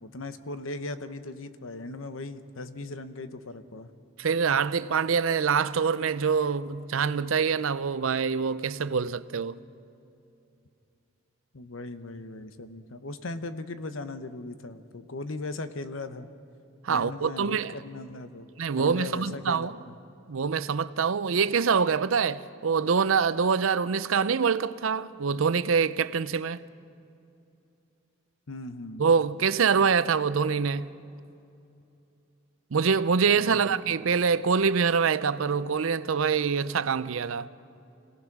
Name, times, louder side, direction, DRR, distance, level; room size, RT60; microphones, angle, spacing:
voice 1, 0.0-3.9 11.5-16.3 16.9-18.5 18.8-20.0 28.5-29.1 33.4-33.6 34.1-34.3, left 2 dB, 85° left, 1.0 m, -38 dB
voice 2, 4.2-9.6 16.8-17.7 18.6-19.7 20.3-26.6 29.0-30.9 32.7-37.5, right 6 dB, 90° right, 0.6 m, -25 dB
26.5 x 18.0 x 6.1 m
head